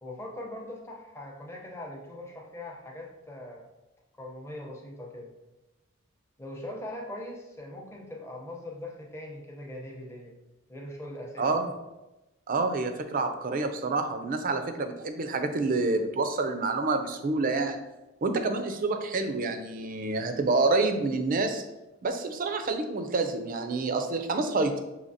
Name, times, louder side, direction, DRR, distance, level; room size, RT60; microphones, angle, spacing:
voice 1, 0.0-3.6 4.2-5.3 6.4-10.4 10.7-11.5, left 1 dB, 15° left, -1 dB, 0.7 m, -41 dB
voice 2, 12.5-17.8 18.2-21.6 22.0-24.8, right 3 dB, 40° right, 7 dB, 0.4 m, -28 dB
6.4 x 2.8 x 2.7 m, 1.0 s
head